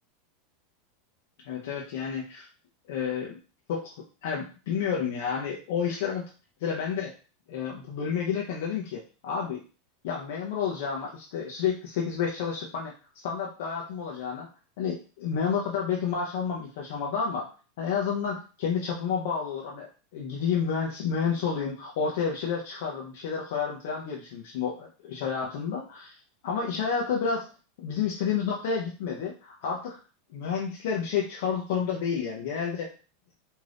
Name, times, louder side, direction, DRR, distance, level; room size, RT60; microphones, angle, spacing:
voice 1, 1.4-2.5 2.9-3.4 3.7-3.9 4.2-6.2 6.6-7.1 7.5-9.6 10.0-12.9 13.2-14.5 14.8-17.5 17.8-26.1 26.4-27.5 27.8-30.0 30.3-32.9, left 6 dB, 55° left, -2 dB, 0.6 m, -30 dB
2.6 x 2.4 x 3.3 m, 0.35 s
supercardioid pair, 175°, 0 cm